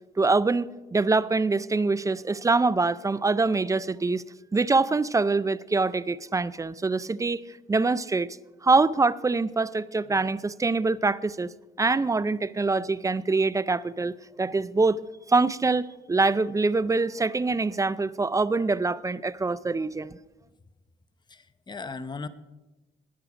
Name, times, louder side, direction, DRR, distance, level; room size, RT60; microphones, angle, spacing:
voice 1, 0.2-4.2 4.5-7.4 7.7-8.3 8.6-11.5 11.8-15.0 15.3-20.2, right 3 dB, 15° right, 0.4 m, -24 dB
voice 2, 21.3-22.3, left 4 dB, 20° left, 0.7 m, -37 dB
19.0 x 6.6 x 5.0 m
cardioid pair, 90°, 20 cm